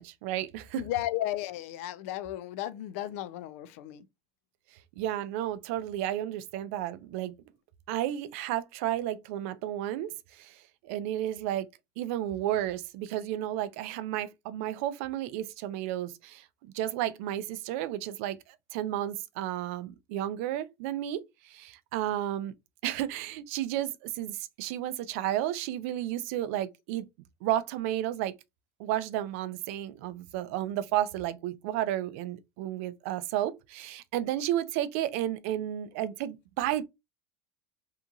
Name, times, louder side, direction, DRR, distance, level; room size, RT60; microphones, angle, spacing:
voice 1, 0.0-0.8 5.0-7.3 7.9-11.7 12.0-22.5 22.8-27.1 27.4-28.3 28.8-36.8, right 12 dB, 75° right, 0.4 m, -32 dB
voice 2, 0.8-4.1, left 13 dB, 80° left, 0.4 m, -34 dB
2.8 x 2.5 x 2.3 m
supercardioid pair, 125°, 7 cm